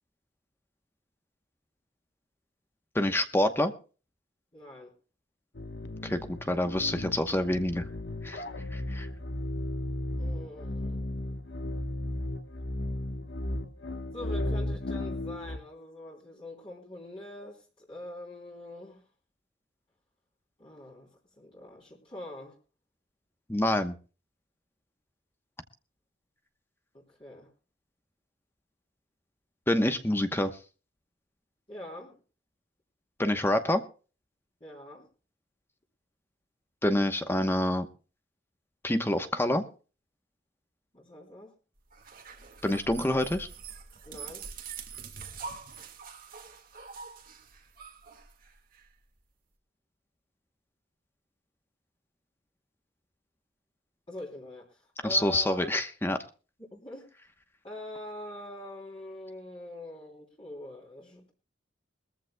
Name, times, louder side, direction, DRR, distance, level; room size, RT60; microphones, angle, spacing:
voice 1, 2.9-3.7 6.0-7.8 8.2-8.4 8.7-9.1 23.5-23.9 29.7-30.5 33.2-33.8 36.8-37.9 38.8-39.6 42.6-43.5 55.0-56.2, left 1 dB, 10° left, 8 dB, 0.9 m, -27 dB
voice 2, 4.5-4.9 10.2-11.0 14.1-19.0 20.6-21.1 21.4-22.6 26.9-27.5 31.7-32.2 34.6-35.1 40.9-41.5 44.0-44.4 54.1-55.7 56.7-57.1 57.6-61.3, left 1 dB, 30° left, -4 dB, 3.3 m, -44 dB
sound 1, 5.5-15.6, left 1 dB, 60° left, 1.1 m, -35 dB
sound 2, 41.9-48.9, right 5 dB, 45° right, 1.8 m, -44 dB
22.0 x 14.5 x 2.2 m, 0.36 s
head